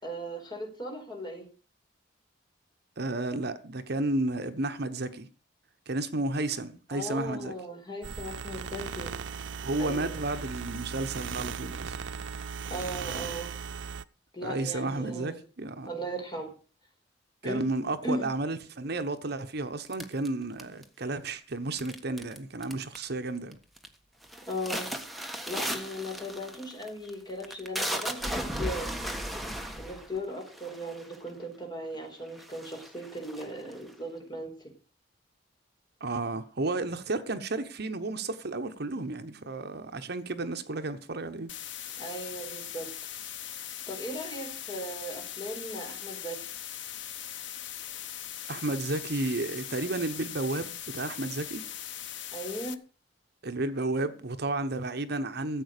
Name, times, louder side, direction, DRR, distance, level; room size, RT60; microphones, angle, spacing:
voice 1, 0.0-1.4 6.9-9.1 9.8-10.1 12.7-13.5 14.3-15.4 15.8-16.5 17.4-17.6 18.0-18.3 24.5-24.9 25.5-28.9 29.8-34.5 42.0-43.1 43.9-46.4 52.3-52.8, equal, 25° left, 4.7 m, -37 dB
voice 2, 3.0-5.3 5.9-7.5 9.6-12.0 14.4-15.9 17.4-23.6 36.0-41.5 48.5-51.6 53.4-55.6, right 2 dB, 60° right, 1.1 m, -32 dB
sound 1, 8.0-14.0, right 6 dB, 85° right, 0.6 m, -37 dB
sound 2, 19.9-21.0 21.8-22.4 22.6-23.1 23.5-23.9 24.2-31.3 31.9-32.0 32.3-33.9, right 1 dB, ahead, 1.4 m, -36 dB
sound 3, 41.5-52.7, left 10 dB, 80° left, 1.0 m, -40 dB
14.0 x 8.2 x 6.7 m
head